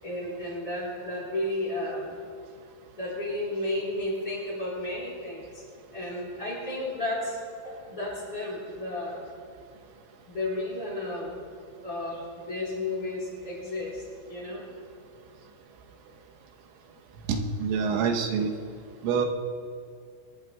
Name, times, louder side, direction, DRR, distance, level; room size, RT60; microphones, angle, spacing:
voice 1, 0.0-2.2 3.0-5.6 5.9-7.4 7.6-9.3 10.3-11.4 11.8-14.6, left 1 dB, 30° left, -5 dB, 4.9 m, -33 dB
voice 2, 17.3-18.5 19.0-19.3, right 5 dB, 85° right, 3 dB, 3.5 m, -26 dB
24.0 x 20.5 x 2.3 m, 2.2 s
omnidirectional pair, 5.5 m